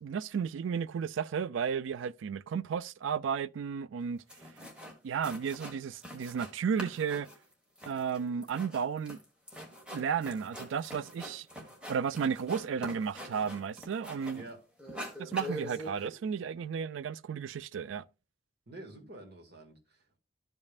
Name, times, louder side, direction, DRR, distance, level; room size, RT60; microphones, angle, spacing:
voice 1, 0.0-4.2 5.0-7.3 7.9-9.2 9.9-11.5 11.9-14.5 15.2-18.0, right 7 dB, 80° right, 0.4 m, -33 dB
sound 1, 4.0-4.1 4.3-5.0 5.2-6.5 6.8-14.5 14.8-16.1, equal, 5° right, 1.4 m, -44 dB
voice 2, 18.7-20.2, right 1 dB, 60° right, 1.8 m, -48 dB
13.0 x 5.3 x 2.4 m
head